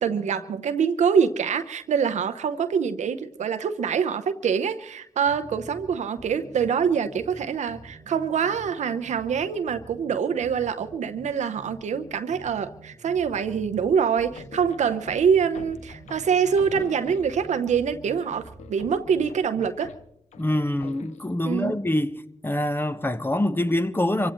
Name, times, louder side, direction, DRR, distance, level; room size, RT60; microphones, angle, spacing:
voice 1, 0.0-19.9 21.4-21.8, right 7 dB, 80° right, 0.8 m, -25 dB
sound 1, 5.2-19.7, right 3 dB, 50° right, 1.5 m, -47 dB
sound 2, 14.3-17.6 18.1-21.3, left 7 dB, 85° left, 0.7 m, -45 dB
voice 2, 20.4-22.2 22.4-24.3, left 1 dB, 20° left, 0.9 m, -25 dB
26.0 x 16.5 x 3.1 m
cardioid pair, 50°, 12 cm